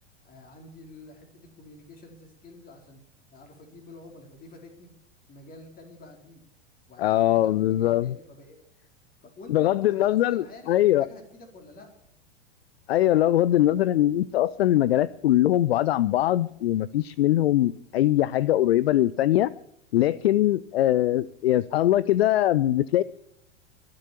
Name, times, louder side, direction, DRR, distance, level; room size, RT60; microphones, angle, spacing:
voice 1, 0.2-3.0 3.3-4.9 5.3-6.4 6.9-8.6 9.4-11.9, left 2 dB, 25° left, 3 dB, 4.2 m, -48 dB
voice 2, 7.0-8.1 9.5-11.1 12.9-19.5 19.9-23.0, left 13 dB, 60° left, 21 dB, 0.5 m, -22 dB
23.0 x 7.7 x 7.4 m, 0.75 s
figure-of-eight pair, 90°, 34 cm